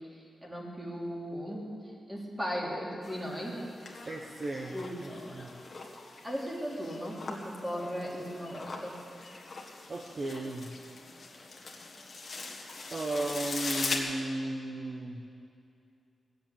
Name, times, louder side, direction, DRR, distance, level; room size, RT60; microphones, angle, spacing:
voice 1, 0.4-1.6 2.1-3.6 4.7-5.5 6.2-9.0 11.3-11.4, equal, 10° right, -3 dB, 3.1 m, -37 dB
sound 1, 3.0-14.0, left 3 dB, 40° left, 1.9 m, -41 dB
voice 2, 4.0-5.5 9.9-10.7 12.9-15.2, right 2 dB, 35° right, 1 dB, 1.0 m, -35 dB
19.0 x 7.9 x 8.8 m, 2.5 s
wide cardioid pair, 135°, 0 cm